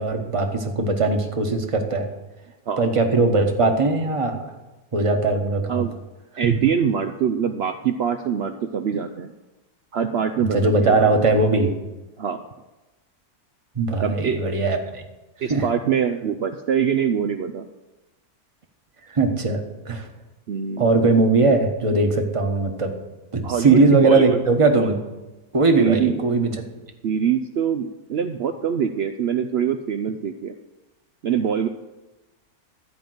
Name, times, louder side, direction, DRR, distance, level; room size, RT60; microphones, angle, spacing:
voice 1, 0.0-2.1 2.8-4.5 4.9-5.8 6.4-6.5 10.4-11.7 13.7-15.0 15.5-15.6 19.1-20.1 20.8-22.9 23.3-25.0 25.5-26.5, right 3 dB, 20° right, 4 dB, 1.1 m, -20 dB
voice 2, 6.4-9.3 9.9-11.0 12.2-12.4 14.0-14.4 15.4-17.7 20.5-20.9 23.4-24.4 25.8-26.2 27.0-30.6 31.2-31.7, right 8 dB, 70° right, 7 dB, 0.6 m, -24 dB
13.0 x 5.1 x 7.8 m, 1.1 s
omnidirectional pair, 1.6 m